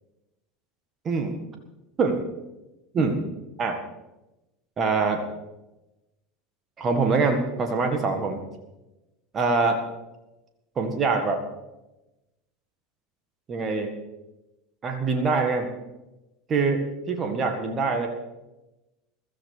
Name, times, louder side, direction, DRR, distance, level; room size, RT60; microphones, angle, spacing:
voice 1, 1.0-1.4 2.0-2.2 2.9-3.2 3.6-3.8 4.8-5.2 6.8-8.4 9.3-9.8 10.7-11.4 13.5-13.9 14.8-15.7 16.5-18.1, right 4 dB, 30° right, 5 dB, 1.8 m, -24 dB
22.0 x 13.5 x 3.5 m, 1.0 s
figure-of-eight pair, 75°, 0 cm